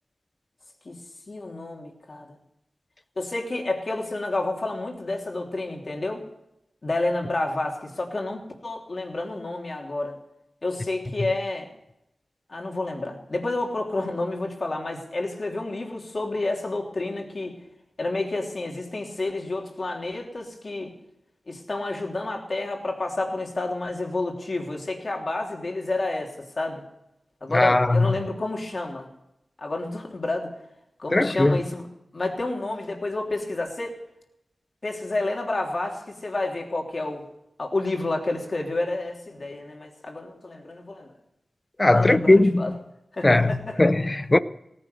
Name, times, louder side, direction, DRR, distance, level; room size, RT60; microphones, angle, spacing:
voice 1, 1.3-2.4 3.2-6.2 6.8-10.2 10.6-11.7 12.5-17.5 18.0-20.9 21.5-26.8 27.4-29.1 29.6-30.5 31.0-31.8 32.1-34.0 34.8-37.2 37.6-41.1 41.9-42.7 43.1-43.8, left 2 dB, 50° left, 3.1 m, -30 dB
voice 2, 27.5-28.1 31.1-31.6 41.8-42.7 43.2-44.4, left 2 dB, 25° left, 0.6 m, -19 dB
17.5 x 10.0 x 6.8 m
wide cardioid pair, 80°, 0 cm